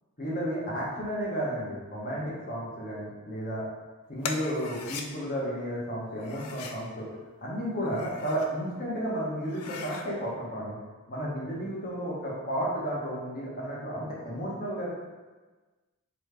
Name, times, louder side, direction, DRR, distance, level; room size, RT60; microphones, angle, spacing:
voice 1, 0.2-3.7 4.1-7.1 7.4-10.8 11.1-14.9, equal, 40° left, -5 dB, 1.0 m, -32 dB
sound 1, 4.2-5.1 6.2-6.8 7.7-8.5 8.9-9.0 9.4-10.1, left 5 dB, 85° left, 0.4 m, -39 dB
3.7 x 3.1 x 3.3 m, 1.3 s
head